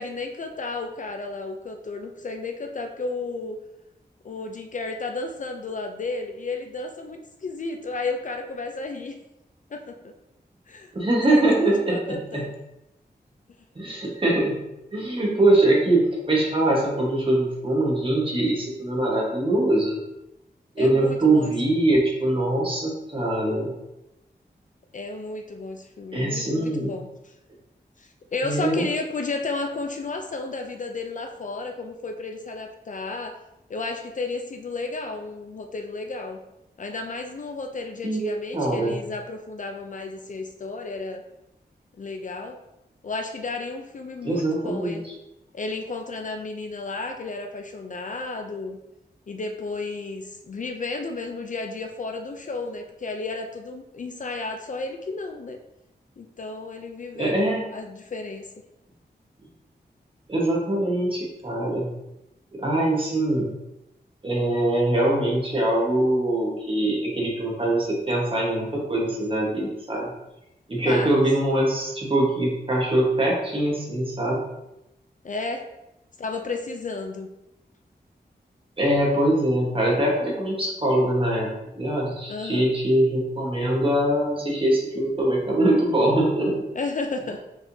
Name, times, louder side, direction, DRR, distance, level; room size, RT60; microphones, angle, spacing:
voice 1, 0.0-3.6 4.2-9.2 9.7-10.1 10.7-12.5 20.8-21.9 24.9-27.3 28.0-33.4 33.7-36.4 36.8-41.2 42.0-42.6 43.0-45.1 45.5-48.8 49.3-55.6 56.2-58.5 70.8-71.2 75.2-75.7 76.2-77.3 82.3-82.7 86.7-87.4, left 3 dB, 50° left, 4 dB, 0.4 m, -33 dB
voice 2, 10.9-12.4 13.7-14.6 14.9-20.0 20.7-23.7 26.1-26.9 28.4-28.9 38.0-38.9 44.2-45.0 57.1-57.6 60.3-61.9 62.5-63.5 64.2-70.1 70.7-74.4 78.8-81.5 81.7-86.6, right 1 dB, 30° right, -3 dB, 1.3 m, -23 dB
4.9 x 3.6 x 2.7 m, 0.89 s
wide cardioid pair, 120°, 17 cm